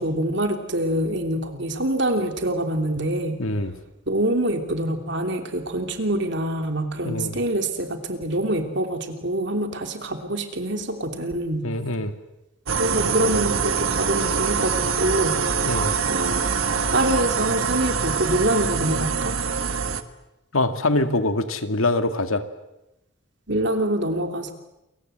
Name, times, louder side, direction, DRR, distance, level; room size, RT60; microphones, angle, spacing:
voice 1, 0.0-3.4 4.1-11.7 12.8-15.4 16.1-16.6 16.9-19.3 23.5-24.5, right 1 dB, 55° right, 6 dB, 3.0 m, -25 dB
voice 2, 3.4-3.7 7.0-7.4 11.6-12.1 15.7-15.9 20.5-22.4, left 2 dB, 80° left, 8 dB, 2.1 m, -24 dB
sound 1, 12.7-20.0, right 5 dB, 80° right, 1.7 m, -24 dB
29.0 x 23.5 x 8.0 m, 0.94 s
head